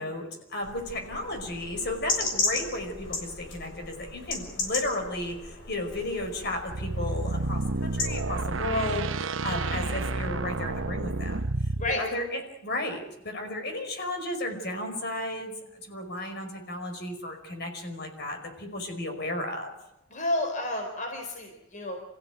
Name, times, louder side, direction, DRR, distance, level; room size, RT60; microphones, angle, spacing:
voice 1, 0.0-11.5 11.9-15.5 15.8-19.7, left 1 dB, 55° left, 5 dB, 5.2 m, -34 dB
sound 1, 0.6-8.1, left 3 dB, 70° left, 6.8 m, -35 dB
sound 2, 6.7-11.9, right 3 dB, 80° right, 1.0 m, -30 dB
voice 2, 20.1-22.0, left 1 dB, 40° left, 3 dB, 4.6 m, -30 dB
29.5 x 15.5 x 9.3 m, 0.87 s
head